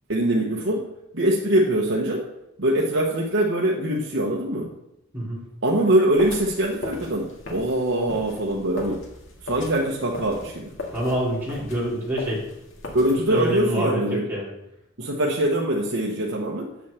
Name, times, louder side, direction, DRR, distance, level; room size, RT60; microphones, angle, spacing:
voice 1, 0.1-2.2 2.6-4.7 5.6-9.1 9.4-10.7 12.9-14.2 15.0-16.7, right 1 dB, 60° right, -2 dB, 1.1 m, -23 dB
sound 1, 6.2-13.6, left 2 dB, 65° left, 2.0 m, -39 dB
voice 2, 10.9-12.4 13.3-14.5, equal, 10° right, -8 dB, 3.3 m, -26 dB
8.1 x 6.3 x 6.9 m, 0.87 s
head